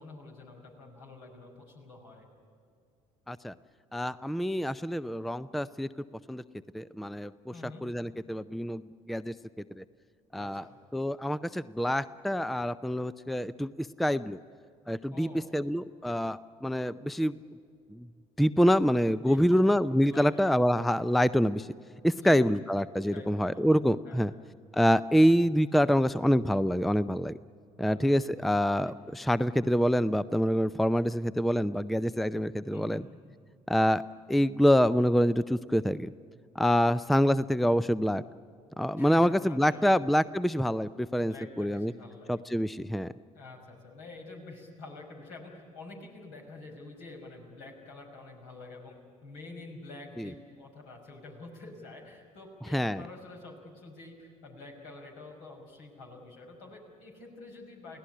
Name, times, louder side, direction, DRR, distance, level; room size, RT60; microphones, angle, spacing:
voice 1, 0.0-2.3 7.5-7.8 10.3-10.8 15.1-15.6 19.2-20.5 22.1-22.5 23.1-23.7 24.1-24.5 27.8-28.0 28.8-28.9 32.7-33.1 38.9-40.0 41.2-42.4 43.3-48.9 49.2-58.0, left 3 dB, 70° left, 0 dB, 5.6 m, -47 dB
voice 2, 3.9-5.9 6.3-6.4 6.7-7.3 7.8-8.8 9.1-9.3 9.8-9.9 10.3-10.7 10.9-14.4 14.9-17.4 17.9-18.1 18.4-21.7 22.0-24.3 24.7-27.4 27.8-33.0 33.7-34.0 34.3-36.1 36.6-38.2 38.8-41.9 42.3-43.1 50.2-50.3 52.7-53.0, equal, ahead, 17 dB, 0.5 m, -26 dB
29.5 x 17.5 x 9.9 m, 2.4 s
figure-of-eight pair, 55°, 17 cm